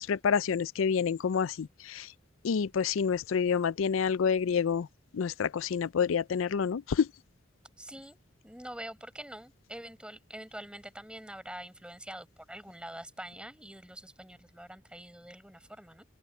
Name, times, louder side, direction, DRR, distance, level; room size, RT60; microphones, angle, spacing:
voice 1, 0.0-2.1 2.4-4.9 5.1-7.1, left 6 dB, 80° left, 0.4 m, -28 dB
voice 2, 7.8-16.1, right 1 dB, 5° right, 6.5 m, -45 dB
open air
head